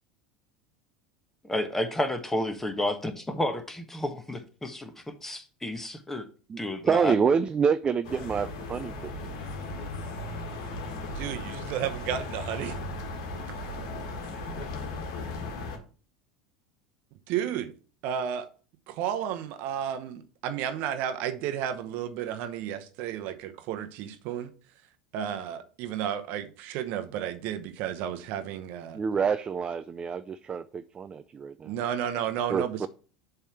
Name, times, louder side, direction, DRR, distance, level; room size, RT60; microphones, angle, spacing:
voice 1, 1.4-6.2 6.6-7.1, left 1 dB, 10° left, 1.2 m, -31 dB
voice 2, 6.5-9.2 28.9-31.7 32.5-32.9, right 6 dB, 25° right, 0.4 m, -27 dB
sound 1, 8.0-15.8, left 2 dB, 65° left, 1.7 m, -36 dB
voice 3, 11.2-12.7 17.3-17.7 18.0-18.5 18.9-24.5 25.1-29.0 31.6-32.9, right 9 dB, 55° right, 0.9 m, -32 dB
7.2 x 3.4 x 5.8 m
hypercardioid pair, 80°, 4 cm